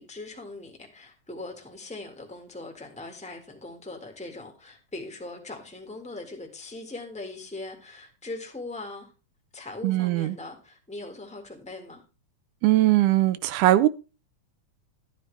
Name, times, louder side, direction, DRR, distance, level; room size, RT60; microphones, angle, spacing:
voice 1, 0.0-9.1 9.5-12.0, left 2 dB, 5° left, 0.8 m, -40 dB
voice 2, 9.8-10.4 12.6-13.9, right 15 dB, 80° right, 2.2 m, -20 dB
12.0 x 9.4 x 3.3 m
omnidirectional pair, 3.6 m